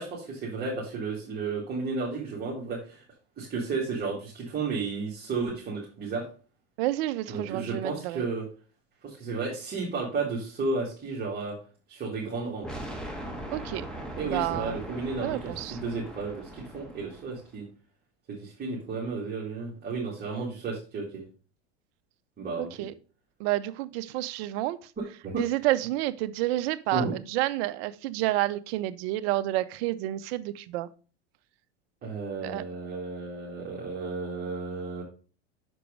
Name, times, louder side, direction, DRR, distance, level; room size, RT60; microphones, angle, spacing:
voice 1, 0.0-3.0 3.4-6.2 7.3-8.5 9.0-11.6 11.9-12.7 14.2-17.7 18.3-21.2 22.4-22.9 25.0-25.4 26.9-27.1 32.0-35.0, right 4 dB, 25° right, 2.4 m, -33 dB
voice 2, 6.8-8.3 13.5-13.9 14.2-14.8 15.2-15.8 22.6-22.9 23.4-24.9 25.4-30.9 32.4-32.6, right 16 dB, 60° right, 0.7 m, -29 dB
sound 1, 12.6-17.5, right 1 dB, ahead, 1.4 m, -40 dB
6.2 x 4.5 x 5.2 m
supercardioid pair, 120°, 35 cm